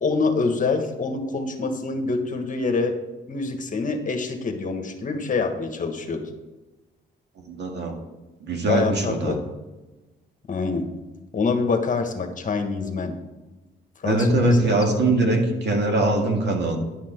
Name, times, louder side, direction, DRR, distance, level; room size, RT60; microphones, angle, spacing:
voice 1, 0.0-3.0 3.3-6.2 8.6-9.4 10.5-10.9 11.3-13.1 14.0-14.8, left 4 dB, 40° left, 5 dB, 1.4 m, -25 dB
voice 2, 7.5-7.9 8.4-9.4 14.0-16.8, right 2 dB, 60° right, 2 dB, 2.0 m, -22 dB
10.5 x 5.9 x 4.4 m, 1.1 s
cardioid pair, 90°, 20 cm